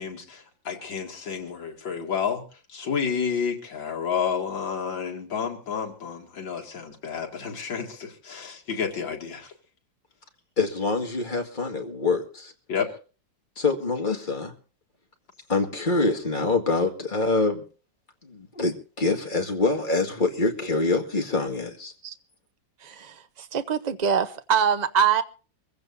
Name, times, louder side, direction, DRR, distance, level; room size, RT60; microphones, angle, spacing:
voice 1, 0.0-2.4 2.7-9.5 12.7-12.9, left 6 dB, 80° left, 3.0 m, -30 dB
voice 2, 10.6-12.5 13.6-14.5 15.5-17.6 18.2-21.9, left 3 dB, 25° left, 2.0 m, -25 dB
voice 3, 22.8-25.2, right 7 dB, 45° right, 0.5 m, -24 dB
24.5 x 16.0 x 2.6 m
omnidirectional pair, 2.0 m